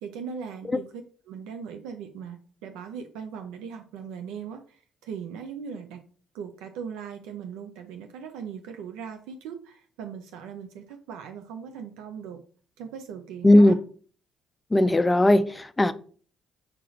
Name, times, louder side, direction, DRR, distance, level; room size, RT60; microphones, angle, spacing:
voice 1, 0.0-6.0 6.3-12.4 12.8-13.7, right 7 dB, 90° right, 0.4 m, -39 dB
voice 2, 13.4-13.8 14.7-15.9, left 1 dB, 15° left, 0.3 m, -18 dB
5.9 x 2.3 x 3.1 m
supercardioid pair, 70°, 0 cm